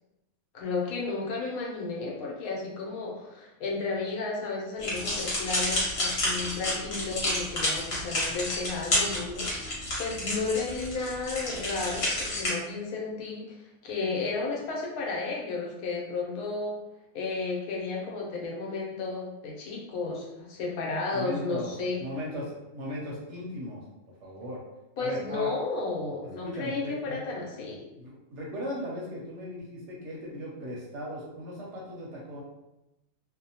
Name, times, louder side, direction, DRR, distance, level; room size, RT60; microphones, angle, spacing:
voice 1, 0.5-16.8 17.1-22.0 25.0-27.8, left 3 dB, 85° left, -2 dB, 1.1 m, -33 dB
sound 1, 4.8-12.5, left 1 dB, 50° left, 1.0 m, -30 dB
voice 2, 21.1-21.7 22.0-23.8 24.2-24.6 25.0-25.5 26.4-27.2 27.9-32.4, equal, 65° right, -3 dB, 0.9 m, -37 dB
2.7 x 2.1 x 2.7 m, 0.94 s
omnidirectional pair, 1.5 m